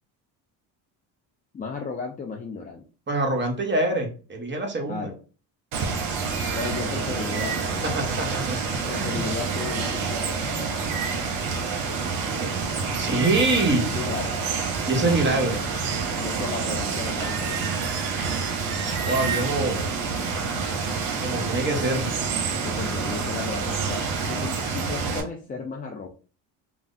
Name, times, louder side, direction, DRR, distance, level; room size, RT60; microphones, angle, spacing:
voice 1, 1.5-2.8 4.9-5.2 6.5-8.1 8.9-10.4 13.9-14.4 16.2-17.7 22.6-26.1, left 4 dB, 20° left, 1 dB, 0.4 m, -34 dB
voice 2, 3.1-5.1 7.9-8.6 8.9-9.2 12.9-13.9 14.9-15.6 19.0-19.9 21.2-22.1, right 2 dB, 20° right, 2 dB, 1.0 m, -25 dB
Water, 5.7-25.2, right 5 dB, 65° right, 0.9 m, -28 dB
3.2 x 2.0 x 2.6 m, 0.36 s
supercardioid pair, 70°, 50 cm